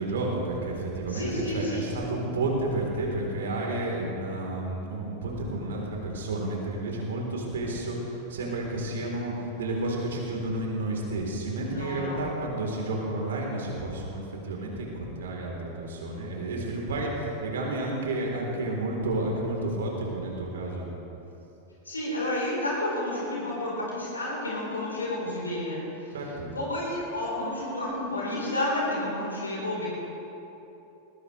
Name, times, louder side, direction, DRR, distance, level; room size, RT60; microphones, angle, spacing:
voice 1, 0.0-20.9 26.1-26.5, right 2 dB, 60° right, -1 dB, 3.9 m, -31 dB
voice 2, 1.1-2.0 11.7-12.2 21.8-26.2 26.5-29.9, left 1 dB, 80° left, -5 dB, 4.4 m, -31 dB
20.0 x 19.0 x 3.4 m, 3.0 s
figure-of-eight pair, 90°, 0 cm